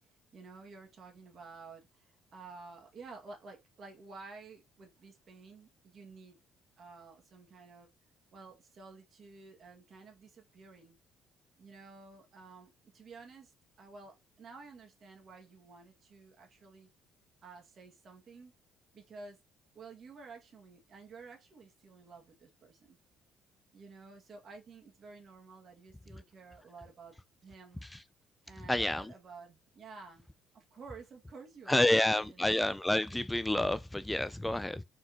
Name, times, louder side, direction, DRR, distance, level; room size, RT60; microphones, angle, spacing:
voice 1, 0.0-6.4 6.8-7.9 8.3-11.0 11.6-16.9 17.4-18.5 18.9-19.4 19.7-23.0 23.7-27.2 27.4-27.9 28.5-30.3 30.5-32.5, right 4 dB, 50° right, 1.8 m, -52 dB
voice 2, 28.7-29.1 31.7-34.8, left 1 dB, 10° left, 0.3 m, -29 dB
4.4 x 4.2 x 2.9 m
supercardioid pair, 80°, 0 cm